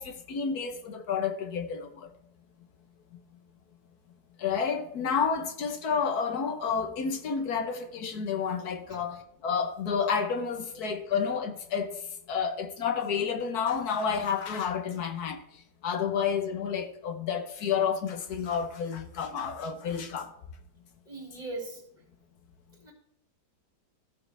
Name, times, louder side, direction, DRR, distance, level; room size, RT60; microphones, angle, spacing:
voice 1, 0.0-2.1 4.4-11.9 12.3-15.4 15.8-20.3, left 6 dB, 70° left, 1.6 m, -30 dB
voice 2, 21.0-21.8 22.8-22.9, right 2 dB, 25° right, 2.8 m, -39 dB
15.0 x 6.8 x 3.4 m
omnidirectional pair, 1.8 m